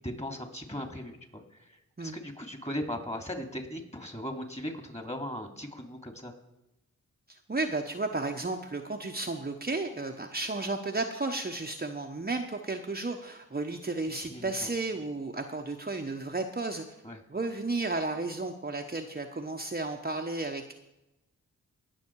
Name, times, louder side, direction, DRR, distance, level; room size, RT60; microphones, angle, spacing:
voice 1, 0.0-1.4 2.0-6.3 14.3-14.7 17.0-17.2, equal, 20° left, 5 dB, 2.9 m, -38 dB
voice 2, 7.3-16.8 17.3-20.7, right 3 dB, 25° right, 3 dB, 1.2 m, -33 dB
19.0 x 6.4 x 4.8 m, 0.89 s
supercardioid pair, 40°, 35 cm